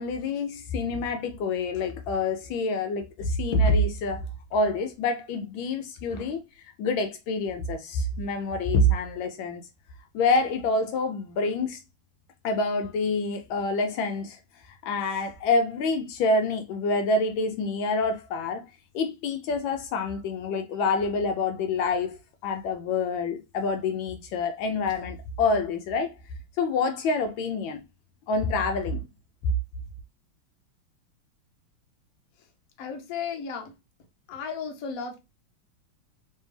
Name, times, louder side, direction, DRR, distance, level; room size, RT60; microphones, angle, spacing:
voice 1, 0.0-9.6 10.1-11.8 12.4-18.7 18.9-26.2 26.6-27.8 28.3-29.1, left 2 dB, 75° left, 1.2 m, -27 dB
voice 2, 32.8-33.7 34.3-35.2, left 6 dB, 55° left, 1.0 m, -34 dB
3.3 x 3.3 x 3.1 m
omnidirectional pair, 2.3 m